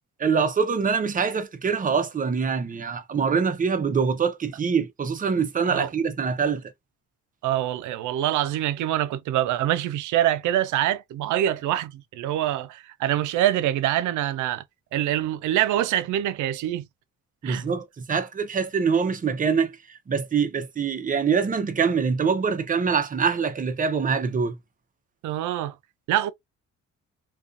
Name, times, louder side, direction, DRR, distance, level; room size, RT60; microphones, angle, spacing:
voice 1, 0.2-6.6 17.4-24.6, right 6 dB, 25° right, 0.6 m, -24 dB
voice 2, 7.4-14.6 14.9-16.8 17.4-17.6 25.2-25.7 26.1-26.3, right 12 dB, 80° right, 0.5 m, -25 dB
2.4 x 2.4 x 2.5 m
cardioid pair, 90°, 30 cm